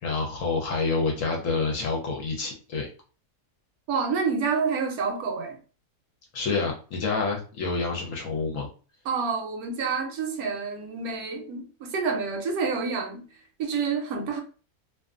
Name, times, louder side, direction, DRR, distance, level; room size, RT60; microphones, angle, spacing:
voice 1, 0.0-2.9 6.3-8.7, left 4 dB, 65° left, 0.9 m, -28 dB
voice 2, 3.9-5.6 9.1-13.2 13.6-14.4, right 5 dB, 75° right, 1.0 m, -28 dB
2.5 x 2.4 x 2.4 m
omnidirectional pair, 1.7 m